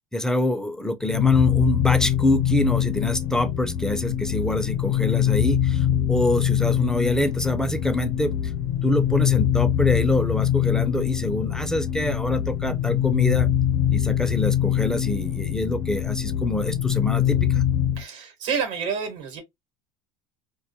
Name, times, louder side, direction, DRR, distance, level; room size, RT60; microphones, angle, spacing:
voice 1, 0.1-8.3 8.8-13.5 13.9-17.6, left 1 dB, 5° left, 0.4 m, -25 dB
sound 1, 1.0-18.0, left 10 dB, 80° left, 0.5 m, -23 dB
voice 2, 18.0-19.4, right 6 dB, 80° right, 1.0 m, -29 dB
2.2 x 2.1 x 2.6 m
supercardioid pair, 110°, 15 cm